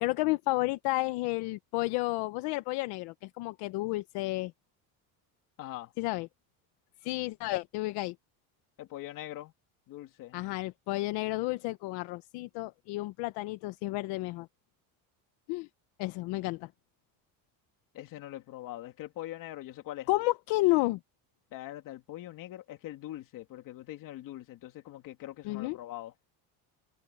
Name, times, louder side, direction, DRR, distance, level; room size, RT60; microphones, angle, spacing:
voice 1, 0.0-4.5 6.0-6.3 7.0-8.1 10.3-14.5 15.5-15.7 16.0-16.7 20.1-21.0 25.4-25.8, left 20 dB, 75° left, 0.9 m, -31 dB
voice 2, 5.6-5.9 8.8-9.5 9.9-10.4 17.9-20.1 21.5-26.1, left 14 dB, 55° left, 2.6 m, -42 dB
cardioid pair, 160°, 40 cm